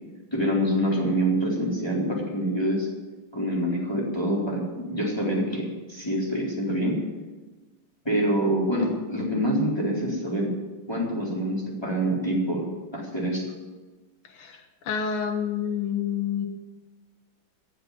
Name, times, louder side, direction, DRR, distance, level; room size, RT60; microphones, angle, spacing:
voice 1, 0.3-2.9 3.3-7.0 8.0-10.5 10.9-12.6 12.9-13.5, equal, 10° left, -4 dB, 4.0 m, -26 dB
voice 2, 14.2-16.5, left 7 dB, 85° left, 5 dB, 2.4 m, -29 dB
15.0 x 7.8 x 9.7 m, 1.2 s
omnidirectional pair, 2.3 m